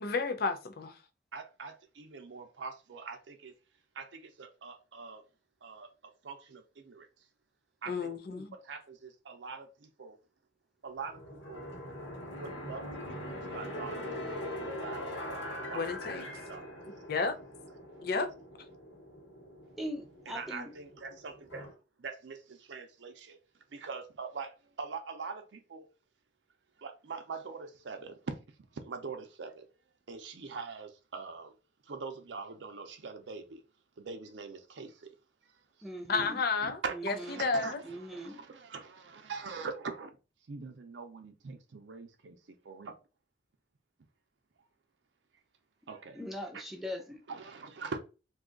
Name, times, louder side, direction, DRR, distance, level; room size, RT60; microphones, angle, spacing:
voice 1, 0.0-1.0 7.9-8.5 15.7-16.3 17.1-17.4 18.0-18.3 36.1-37.8, left 4 dB, 55° left, 0.5 m, -32 dB
voice 2, 1.3-3.5 3.9-5.2 5.6-7.1 7.8-8.1 8.5-10.2 10.8-11.8 12.4-15.4 15.6-15.9 16.5-16.7 20.3-21.7 22.0-23.4 23.7-25.9 26.8-28.3 28.7-29.7 30.1-31.5 31.8-33.6 34.0-35.1 35.8-35.9 36.6-40.1 40.5-42.4 42.6-42.9 45.9-46.2 47.3-48.0, right 4 dB, 80° right, 0.5 m, -43 dB
sound 1, 11.1-21.7, left 1 dB, 85° left, 1.4 m, -42 dB
voice 3, 19.8-20.7 35.8-36.4 36.9-37.5 37.8-38.4 46.1-47.2, equal, ahead, 0.6 m, -41 dB
2.7 x 2.3 x 3.8 m
head